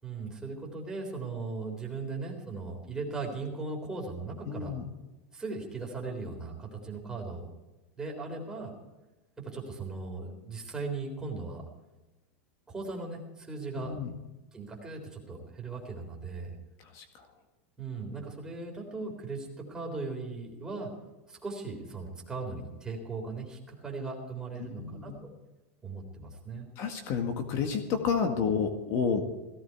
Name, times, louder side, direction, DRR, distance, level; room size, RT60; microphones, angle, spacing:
voice 1, 0.0-4.7 5.3-7.5 8.0-8.7 9.4-11.6 12.7-13.9 14.5-16.5 17.8-20.9 21.3-25.3 25.8-26.7, right 3 dB, 10° right, 0 dB, 3.8 m, -38 dB
voice 2, 4.5-4.9 13.8-14.1 16.8-17.3 24.6-25.2 26.8-29.2, left 6 dB, 45° left, 6 dB, 1.8 m, -31 dB
17.5 x 16.0 x 4.7 m, 1.1 s
supercardioid pair, 150°, 7 cm